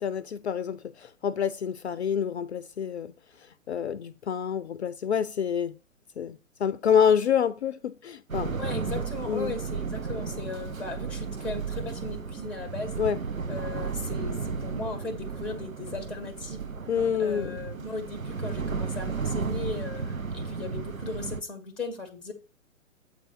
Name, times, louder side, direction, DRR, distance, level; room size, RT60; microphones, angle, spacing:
voice 1, 0.0-3.1 3.7-5.8 6.2-8.5 9.3-9.6 13.0-13.2 16.9-17.6, left 8 dB, 55° left, 0.5 m, -27 dB
sound 1, 8.3-21.4, right 5 dB, 85° right, 1.0 m, -34 dB
voice 2, 8.6-12.9 13.5-16.7 17.2-22.3, left 3 dB, ahead, 0.9 m, -37 dB
7.9 x 4.6 x 4.4 m
figure-of-eight pair, 120°, 40 cm